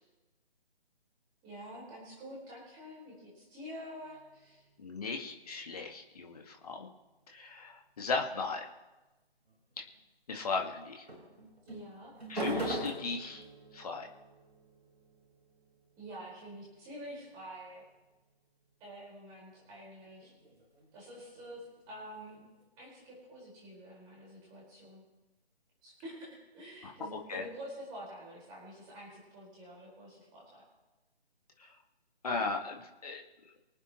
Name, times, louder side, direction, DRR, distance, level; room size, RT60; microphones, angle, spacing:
voice 1, 1.4-4.6 11.6-12.1 16.0-17.8 18.8-20.3 20.9-21.6 21.9-22.4 22.8-25.0 25.8-30.6, equal, 15° right, -5 dB, 5.0 m, -47 dB
sound 1, 4.0-5.9 9.5-10.0 11.1-17.8 19.6-22.6, right 1 dB, 75° right, 5.0 m, -44 dB
voice 2, 4.8-6.9 7.3-8.7 10.3-11.0 12.3-13.4 13.7-14.1 26.8-27.4 31.6-31.7 32.2-33.2, left 4 dB, 35° left, 2 dB, 1.9 m, -37 dB
25.5 x 9.1 x 3.2 m, 1.1 s
figure-of-eight pair, 150°, 32 cm